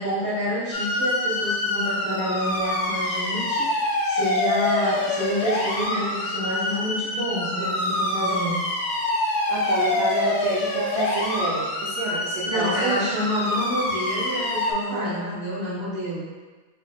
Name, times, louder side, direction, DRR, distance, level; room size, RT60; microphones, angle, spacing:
voice 1, 0.0-8.6 12.4-16.3, equal, 15° right, -11 dB, 1.4 m, -28 dB
sound 1, 0.7-14.7, left 2 dB, 65° left, 1.0 m, -26 dB
voice 2, 9.5-13.0 14.8-15.3, right 2 dB, 80° right, -4 dB, 1.3 m, -29 dB
3.3 x 2.4 x 3.6 m, 1.3 s
omnidirectional pair, 2.1 m